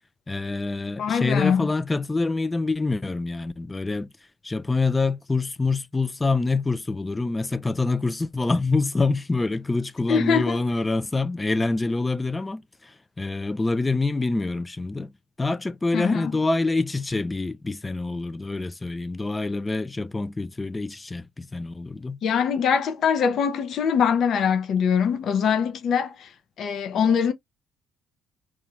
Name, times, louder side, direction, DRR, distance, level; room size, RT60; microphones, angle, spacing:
voice 1, 0.3-4.1 4.4-15.1 15.4-22.2, left 3 dB, 20° left, 0.4 m, -26 dB
voice 2, 1.0-1.7 10.1-10.6 15.9-16.3 22.2-26.3 26.6-27.3, left 7 dB, 55° left, 0.7 m, -23 dB
2.8 x 2.4 x 2.9 m
hypercardioid pair, 50°, 0 cm